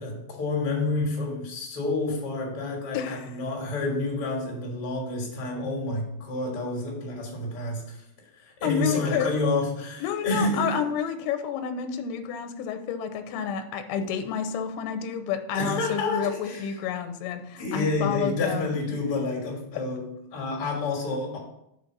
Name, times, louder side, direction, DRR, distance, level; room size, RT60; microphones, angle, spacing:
voice 1, 0.0-8.0 8.3-10.8 15.5-16.8 17.6-21.4, left 2 dB, 55° left, -2 dB, 1.6 m, -29 dB
voice 2, 2.9-3.3 8.6-9.3 10.0-18.7, left 8 dB, 80° left, 8 dB, 2.5 m, -30 dB
7.0 x 3.8 x 6.0 m, 0.78 s
omnidirectional pair, 4.7 m